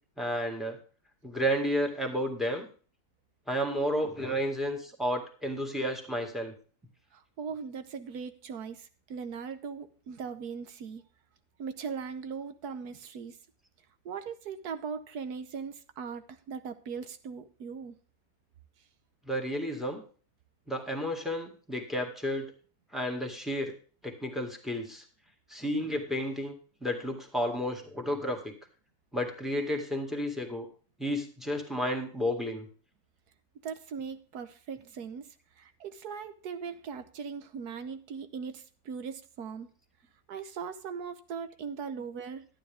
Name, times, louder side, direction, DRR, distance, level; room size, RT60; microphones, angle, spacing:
voice 1, 0.2-0.8 1.2-2.7 3.5-6.5 19.3-20.0 20.7-22.5 22.9-23.7 24.0-25.0 25.5-26.6 26.8-28.5 29.1-30.7 31.0-32.7, equal, ahead, 2 dB, 1.9 m, -32 dB
voice 2, 7.1-11.0 11.6-13.4 14.0-18.0 33.6-39.7 40.3-42.5, right 6 dB, 75° right, 9 dB, 1.5 m, -39 dB
12.0 x 9.7 x 3.5 m, 0.40 s
omnidirectional pair, 1.7 m